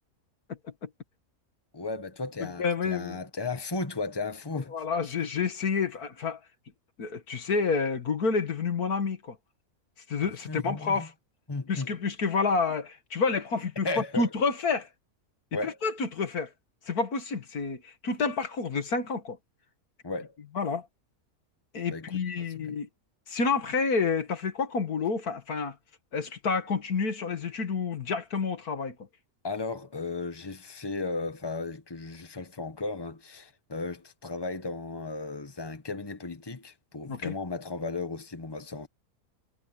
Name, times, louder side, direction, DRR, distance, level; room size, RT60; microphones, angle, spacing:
voice 1, 1.7-4.7 10.2-11.1 11.5-11.9 13.8-14.3 15.5-15.8 20.0-20.4 21.9-22.8 29.4-38.9, left 3 dB, 15° left, 1.5 m, -35 dB
voice 2, 2.4-3.2 4.7-6.4 7.0-9.4 10.1-11.1 11.7-14.9 15.6-16.5 16.9-19.4 20.5-20.9 21.7-22.9 23.3-25.8 26.1-29.0 37.1-37.4, left 4 dB, 85° left, 2.4 m, -29 dB
omnidirectional pair, 1.5 m